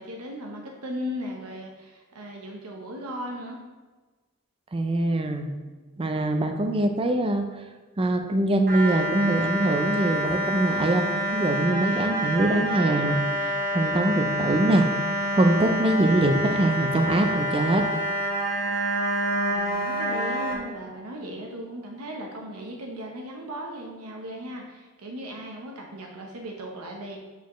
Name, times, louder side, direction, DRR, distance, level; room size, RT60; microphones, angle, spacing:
voice 1, 0.0-3.6 18.5-18.9 19.3-27.2, equal, 80° right, 1 dB, 0.8 m, -37 dB
voice 2, 4.7-5.5 6.0-7.4 8.0-11.1 11.3-13.2 13.7-14.9 15.3-17.8, right 1 dB, 25° right, 6 dB, 0.5 m, -23 dB
sound 1, 8.7-20.5, right 1 dB, 40° right, 1.3 m, -27 dB
8.2 x 4.2 x 3.1 m, 1.3 s
head